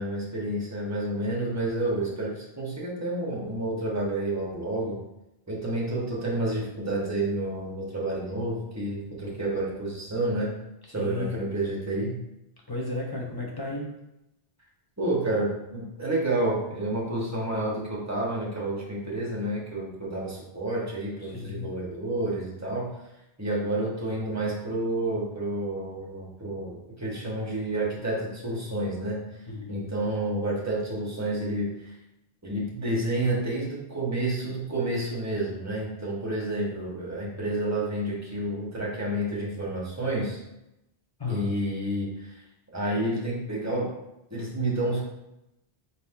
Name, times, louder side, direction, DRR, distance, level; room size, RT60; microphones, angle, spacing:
voice 1, 0.0-5.0 5.5-10.5 10.9-12.1 15.0-22.9 23.4-29.2 29.7-31.9 32.4-40.4 41.3-42.4 42.7-43.9 44.3-45.0, right 1 dB, 15° right, -5 dB, 1.0 m, -29 dB
voice 2, 10.9-11.4 12.7-13.9 21.2-21.7 29.5-29.9 41.2-41.5, left 3 dB, 25° left, -2 dB, 0.7 m, -34 dB
4.0 x 2.8 x 3.6 m, 0.88 s
omnidirectional pair, 1.1 m